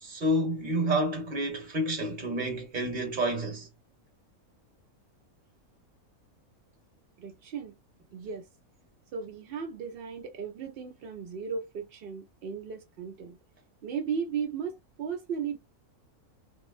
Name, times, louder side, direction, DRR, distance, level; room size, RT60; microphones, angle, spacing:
voice 1, 0.0-3.7, right 1 dB, 35° right, 1.0 m, -29 dB
voice 2, 7.2-7.8 8.1-8.5 9.1-13.4 13.8-15.6, right 6 dB, 80° right, 0.5 m, -36 dB
2.6 x 2.0 x 2.3 m
omnidirectional pair, 1.6 m